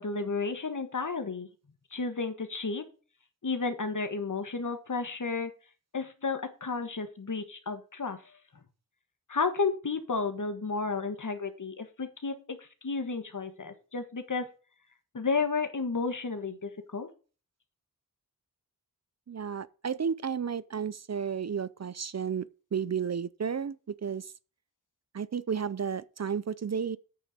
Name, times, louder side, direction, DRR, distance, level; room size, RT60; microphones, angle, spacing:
voice 1, 0.0-1.5 1.9-2.8 3.4-5.5 5.9-8.2 9.3-14.5 15.1-17.1, left 4 dB, 55° left, 1.5 m, -32 dB
voice 2, 19.3-23.8 24.0-24.3 25.1-27.0, right 7 dB, 45° right, 0.5 m, -32 dB
8.6 x 6.8 x 5.0 m
wide cardioid pair, 70°, 36 cm